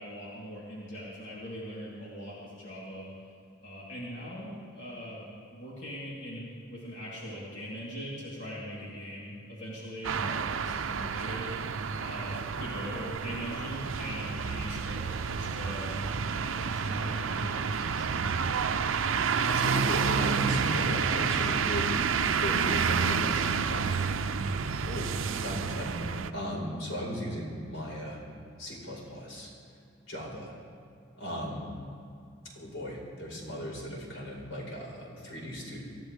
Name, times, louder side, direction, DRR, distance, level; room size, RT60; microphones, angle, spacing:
voice 1, 0.0-3.1 3.6-11.5 12.0-15.9 16.3-18.1, equal, 65° left, -7 dB, 3.5 m, -41 dB
sound 1, 10.0-26.3, right 6 dB, 90° right, 0.6 m, -29 dB
voice 2, 19.2-21.9 22.2-26.0 26.3-28.2 28.6-29.5 30.1-30.5 31.2-31.7 32.6-35.8, equal, 90° left, -3 dB, 4.6 m, -37 dB
24.5 x 15.0 x 3.4 m, 2.3 s
head